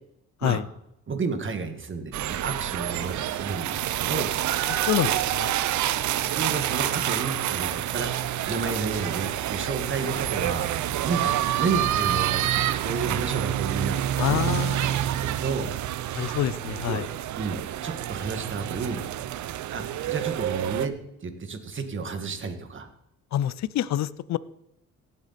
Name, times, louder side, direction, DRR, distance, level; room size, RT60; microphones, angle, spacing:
voice 1, 1.1-4.3 6.3-8.1 8.5-10.8 11.0-11.3 11.6-14.0 14.2-14.6 14.9-15.7 16.9-17.0 17.4-19.0 19.7-20.9 21.2-22.9, right 4 dB, 40° right, 7 dB, 1.8 m, -31 dB
sound 1, 2.1-20.9, right 12 dB, 70° right, 0.7 m, -28 dB
voice 2, 4.7-5.5 14.2-15.0 16.2-17.1 23.3-24.4, left 12 dB, 65° left, 18 dB, 0.6 m, -27 dB
17.0 x 8.3 x 4.2 m, 0.81 s
cardioid pair, 90°, 30 cm